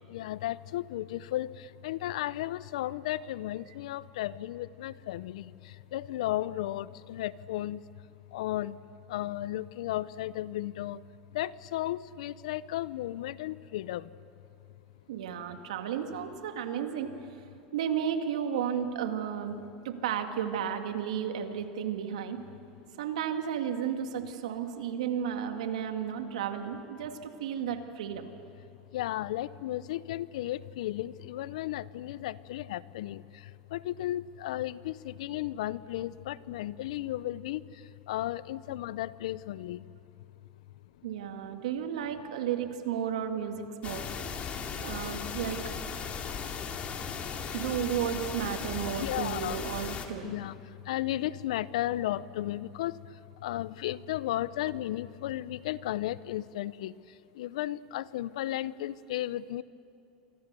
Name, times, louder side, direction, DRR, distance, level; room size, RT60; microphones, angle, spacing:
voice 1, 0.1-1.5 1.8-5.5 5.9-7.8 8.3-8.8 9.1-11.0 11.3-14.1 28.9-33.2 33.7-37.6 38.1-39.8 47.5-47.6 49.0-49.6 50.2-50.6 50.9-52.9 53.4-56.9 57.4-59.6, left 14 dB, 75° left, 19 dB, 0.7 m, -34 dB
voice 2, 15.1-17.1 17.7-22.4 23.0-28.3 41.0-44.1 44.8-45.6 47.5-50.3, right 8 dB, 80° right, 6 dB, 2.1 m, -33 dB
sound 1, 43.8-50.1, left 6 dB, 35° left, 2.7 m, -37 dB
28.0 x 24.5 x 6.9 m, 2.6 s
hypercardioid pair, 100°, 4 cm